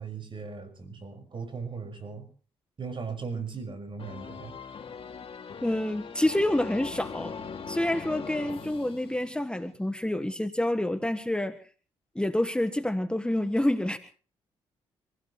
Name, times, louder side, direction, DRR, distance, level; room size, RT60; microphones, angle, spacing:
voice 1, 0.0-2.3 2.8-4.5, right 5 dB, 45° right, 8 dB, 5.9 m, -38 dB
sound 1, 4.0-9.6, left 5 dB, 50° left, 2.8 m, -41 dB
voice 2, 5.6-7.4 7.7-11.6 12.1-14.0, left 1 dB, 10° left, 9 dB, 1.5 m, -28 dB
26.0 x 16.5 x 3.3 m, 0.40 s
supercardioid pair, 55°, 12 cm